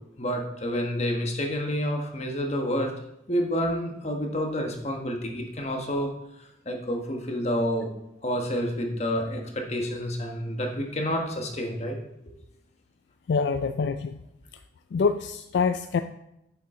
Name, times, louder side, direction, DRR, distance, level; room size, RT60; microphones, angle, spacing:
voice 1, 0.2-2.9 3.3-6.1 6.4-7.9 8.2-12.0, equal, 35° left, 2 dB, 1.3 m, -29 dB
voice 2, 13.3-14.2 14.9-16.0, left 5 dB, 65° left, 9 dB, 0.3 m, -25 dB
8.5 x 7.2 x 3.8 m, 0.84 s
head